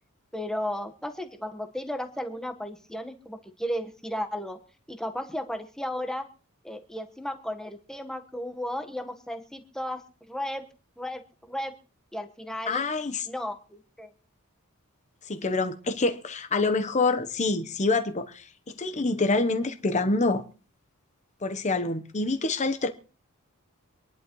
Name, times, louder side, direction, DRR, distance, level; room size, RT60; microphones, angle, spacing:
voice 1, 0.3-4.6 4.9-6.3 6.6-10.0 10.3-10.6 11.0-11.7 12.1-12.8 13.3-14.1, equal, 5° left, 1.2 m, -34 dB
voice 2, 12.7-13.3 15.3-20.4 21.4-22.9, left 3 dB, 35° left, 0.9 m, -26 dB
25.5 x 11.0 x 3.1 m
head